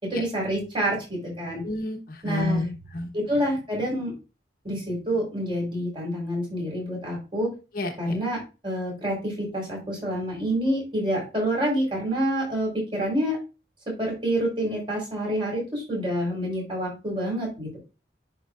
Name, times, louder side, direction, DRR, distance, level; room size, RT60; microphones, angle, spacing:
voice 1, 0.0-1.6 2.2-2.7 3.1-4.1 4.6-7.5 8.0-13.4 14.0-17.8, equal, 30° right, -2 dB, 4.3 m, -27 dB
voice 2, 1.6-2.6 2.9-3.1 7.7-8.2, left 2 dB, 55° left, 4 dB, 1.1 m, -29 dB
10.5 x 4.8 x 2.5 m, 0.30 s
head